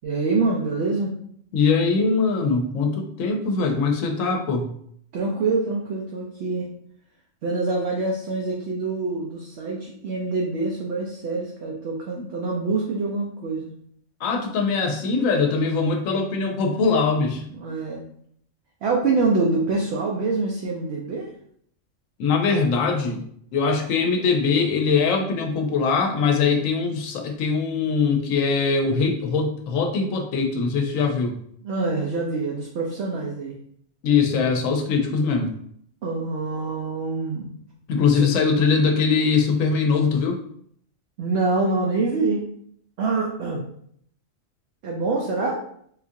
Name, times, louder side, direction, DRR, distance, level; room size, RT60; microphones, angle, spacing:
voice 1, 0.0-1.1 5.1-6.7 7.4-13.7 17.5-18.0 18.8-21.3 31.6-33.6 36.0-37.5 38.1-38.3 41.2-42.4 43.0-43.6 44.8-45.6, right 3 dB, 65° right, -1 dB, 0.7 m, -25 dB
voice 2, 1.5-4.7 12.2-12.3 14.2-17.4 22.2-23.2 23.5-31.4 34.0-35.6 37.9-40.4, left 4 dB, 85° left, 3 dB, 1.0 m, -22 dB
3.7 x 2.4 x 2.7 m, 0.66 s
omnidirectional pair, 1.3 m